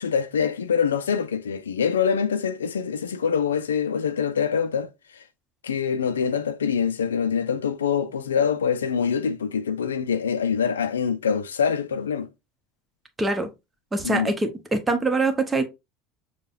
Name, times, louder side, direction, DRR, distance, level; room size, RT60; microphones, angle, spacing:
voice 1, 0.0-5.2 5.6-12.3 14.0-14.3, left 7 dB, 80° left, 0.3 m, -25 dB
voice 2, 13.2-13.5 13.9-15.6, right 2 dB, 15° right, 0.9 m, -24 dB
6.5 x 2.2 x 2.4 m
figure-of-eight pair, 70°, 0 cm